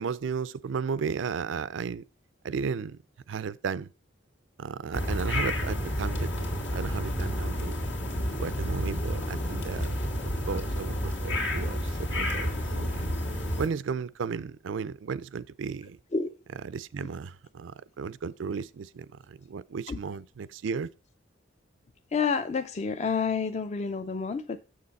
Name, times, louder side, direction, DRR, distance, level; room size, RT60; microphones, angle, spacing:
voice 1, 0.0-2.0 2.4-3.0 3.3-3.9 4.6-6.3 6.7-7.8 8.3-9.9 10.5-13.0 13.6-16.0 16.6-20.9, right 6 dB, 85° right, 0.4 m, -34 dB
sound 1, 4.9-13.7, equal, 75° left, 1.9 m, -30 dB
voice 2, 22.1-24.6, left 5 dB, 35° left, 0.4 m, -29 dB
7.5 x 6.5 x 4.0 m
head